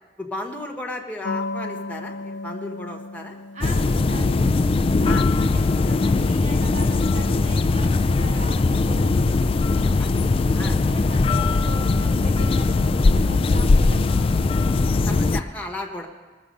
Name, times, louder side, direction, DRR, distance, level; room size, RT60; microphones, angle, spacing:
voice 1, 0.2-3.4 5.0-5.3 10.0-10.1 10.5-10.8 15.1-16.1, left 1 dB, 10° left, 0 dB, 1.1 m, -34 dB
sound 1, 1.2-7.4, left 3 dB, 70° left, 0.7 m, -36 dB
voice 2, 3.5-4.5 5.0-9.4 10.6-14.5, right 2 dB, 40° right, 4 dB, 0.7 m, -40 dB
sound 2, 3.6-15.4, left 3 dB, 30° left, 0.3 m, -20 dB
20.0 x 7.3 x 5.3 m, 1.4 s
head